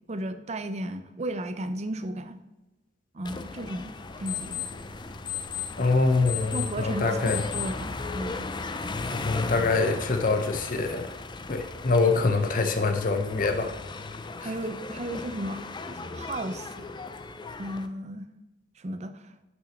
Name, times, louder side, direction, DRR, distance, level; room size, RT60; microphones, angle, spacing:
voice 1, 0.1-2.4 3.1-3.9 4.2-4.7 6.5-8.5 14.4-16.9 17.6-18.3 18.8-19.3, right 1 dB, 35° right, 9 dB, 0.7 m, -34 dB
sound 1, 3.2-17.9, left 3 dB, 25° left, 0.5 m, -37 dB
sound 2, 4.0-10.5, left 10 dB, 85° left, 3.0 m, -39 dB
voice 2, 5.8-7.4 9.1-11.1 11.5-13.7 14.4-14.5, left 3 dB, 50° left, 7 dB, 0.9 m, -25 dB
6.3 x 6.2 x 6.5 m, 1.0 s
head